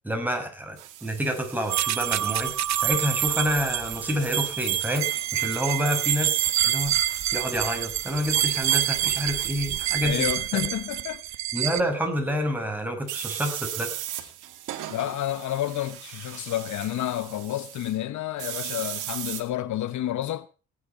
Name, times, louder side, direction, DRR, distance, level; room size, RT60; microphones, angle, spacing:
voice 1, 0.0-2.5 2.8-6.9 7.3-10.3 11.5-13.9, equal, 5° right, 6.5 m, -28 dB
sound 1, 0.8-10.4 13.1-18.0 18.4-19.4, right 12 dB, 90° right, 2.3 m, -40 dB
sound 2, 1.7-11.8, right 12 dB, 65° right, 1.0 m, -27 dB
voice 2, 10.0-11.2 14.9-20.5, left 12 dB, 70° left, 1.0 m, -30 dB
18.0 x 11.0 x 4.3 m
cardioid pair, 90°, 30 cm